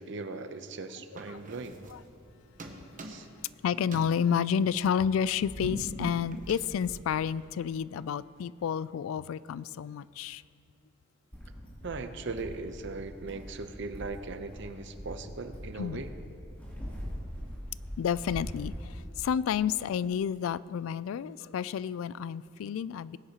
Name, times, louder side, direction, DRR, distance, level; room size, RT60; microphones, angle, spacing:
voice 1, 0.0-1.8 3.0-3.3 11.8-16.1, right 3 dB, 65° right, 8 dB, 0.7 m, -39 dB
sound 1, 1.2-2.3 2.6-3.5 3.8-7.6, right 1 dB, 40° right, 1.0 m, -42 dB
voice 2, 3.6-10.4 15.8-16.0 18.0-23.2, left 8 dB, 85° left, 17 dB, 0.3 m, -30 dB
sound 2, 11.3-19.0, equal, 10° left, 3.0 m, -42 dB
19.0 x 9.5 x 2.9 m, 2.3 s
head